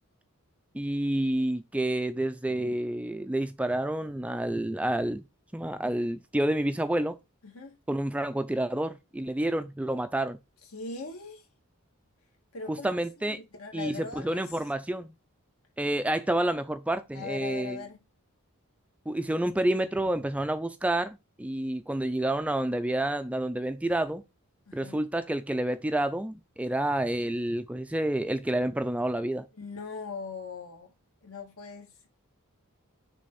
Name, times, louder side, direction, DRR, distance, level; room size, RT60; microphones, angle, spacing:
voice 1, 0.7-5.2 5.5-7.2 7.9-10.4 12.7-13.4 13.7-15.1 15.8-17.8 19.1-24.2 24.7-29.4, right 1 dB, 5° right, 0.3 m, -29 dB
voice 2, 7.4-7.8 10.6-11.5 12.5-14.5 17.1-18.0 24.7-25.0 29.5-30.9 31.2-32.1, left 4 dB, 75° left, 1.8 m, -40 dB
6.4 x 3.4 x 5.5 m
head